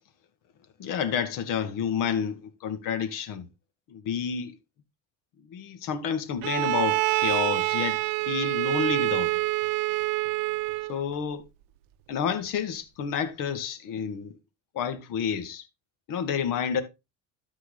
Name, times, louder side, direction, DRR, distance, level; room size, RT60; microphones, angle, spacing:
voice 1, 0.8-3.5 3.9-4.5 5.5-8.0 8.3-9.4 10.9-11.4 12.1-14.3 14.7-15.6 16.1-16.8, left 7 dB, 60° left, 2.1 m, -30 dB
Bowed string instrument, 6.4-11.0, right 19 dB, 60° right, 0.7 m, -26 dB
13.0 x 4.6 x 4.0 m
supercardioid pair, 105°, 38 cm